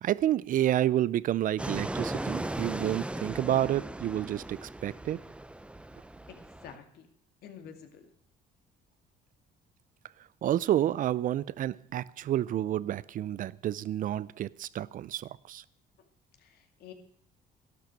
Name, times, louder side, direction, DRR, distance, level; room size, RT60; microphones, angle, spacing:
voice 1, 0.0-5.2 10.4-15.6, right 12 dB, 55° right, 0.5 m, -29 dB
Fixed-wing aircraft airplane, 1.6-6.8, right 1 dB, 5° right, 0.6 m, -37 dB
voice 2, 6.3-7.1 7.4-8.1 16.4-16.9, left 8 dB, 70° left, 2.3 m, -49 dB
12.5 x 12.0 x 6.4 m
cardioid pair, 110°, 17 cm